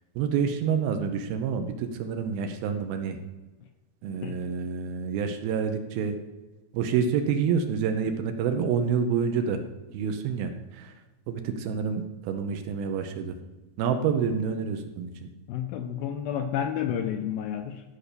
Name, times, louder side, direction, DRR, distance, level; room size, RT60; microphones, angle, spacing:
voice 1, 0.2-3.2 4.0-6.2 6.7-9.6 9.9-10.9 11.3-13.4 13.8-15.3, right 6 dB, 75° right, 7 dB, 2.5 m, -28 dB
voice 2, 15.5-17.8, left 9 dB, 80° left, 6 dB, 2.3 m, -30 dB
13.5 x 5.7 x 6.8 m, 1.2 s
omnidirectional pair, 4.8 m